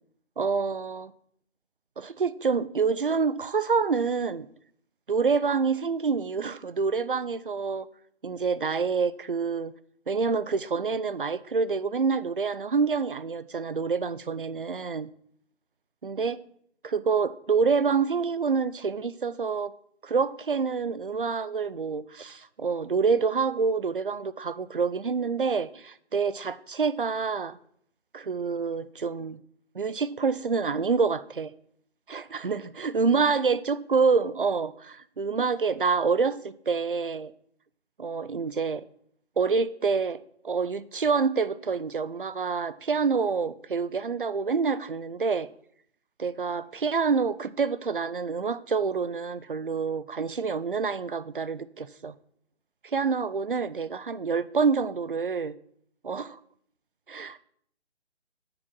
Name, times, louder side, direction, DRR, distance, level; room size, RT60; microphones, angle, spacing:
voice 1, 0.4-1.1 2.0-4.5 5.1-7.9 8.2-9.7 10.1-15.1 16.0-16.4 16.9-19.7 20.0-27.6 28.1-29.4 29.7-31.5 32.1-37.3 38.0-38.8 39.4-45.5 46.2-52.1 52.8-55.5 56.0-56.4 57.1-57.4, right 5 dB, 50° right, 0.4 m, -27 dB
7.6 x 6.0 x 6.1 m
hypercardioid pair, 180°, 35 cm